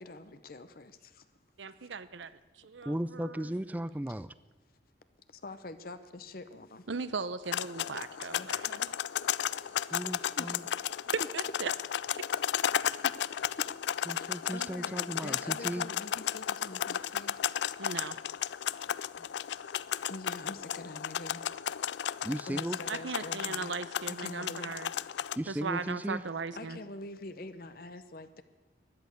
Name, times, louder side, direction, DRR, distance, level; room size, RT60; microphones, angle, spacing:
voice 1, 0.0-1.2 4.1-4.2 5.3-6.9 8.3-8.9 10.4-10.6 12.3-12.4 13.0-13.3 13.8-17.4 20.1-21.4 22.2-23.8 24.1-25.3 26.5-28.4, left 2 dB, 50° left, 11 dB, 0.7 m, -46 dB
voice 2, 1.6-2.3 2.6-3.5 6.9-8.8 11.3-11.7 12.1-12.2 17.8-18.2 22.9-24.9 25.5-26.8, right 4 dB, 80° right, 15 dB, 0.7 m, -38 dB
voice 3, 2.9-4.3 9.9-10.6 14.1-15.9 22.2-22.8 25.4-26.2, right 1 dB, 10° right, 16 dB, 0.4 m, -36 dB
sound 1, 7.5-25.4, left 9 dB, 65° left, 0.3 m, -34 dB
Wind instrument woodwind instrument, 9.2-13.4, equal, 30° right, 0.9 m, -60 dB
13.0 x 10.5 x 7.9 m, 1.2 s
head